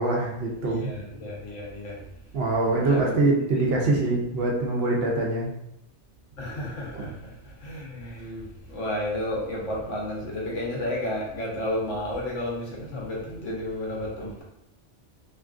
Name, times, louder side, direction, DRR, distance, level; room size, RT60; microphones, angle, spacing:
voice 1, 0.0-0.9 2.3-5.5 6.9-7.0, right 2 dB, 65° right, -2 dB, 0.8 m, -24 dB
voice 2, 0.6-2.0 2.8-3.8 6.4-14.4, left 1 dB, 85° left, -3 dB, 1.1 m, -32 dB
2.8 x 2.4 x 2.3 m, 0.81 s
omnidirectional pair, 1.2 m